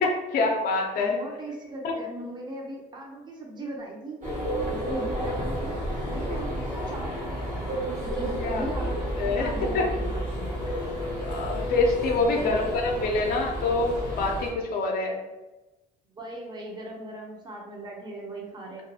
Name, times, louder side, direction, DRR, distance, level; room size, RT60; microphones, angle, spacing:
voice 1, 0.0-1.2 1.8-1.9 8.4-8.7 9.2-9.5 9.7-9.8 11.2-15.2, left 3 dB, 60° left, 1 dB, 0.4 m, -26 dB
voice 2, 0.9-4.2 4.6-5.8 6.1-9.0 9.2-10.5 12.3-13.3 16.1-18.8, right 1 dB, 25° right, -1 dB, 0.6 m, -38 dB
sound 1, 4.2-14.5, equal, 50° right, 1.1 m, -31 dB
2.4 x 2.2 x 2.6 m, 1.1 s
cardioid pair, 110°, 17 cm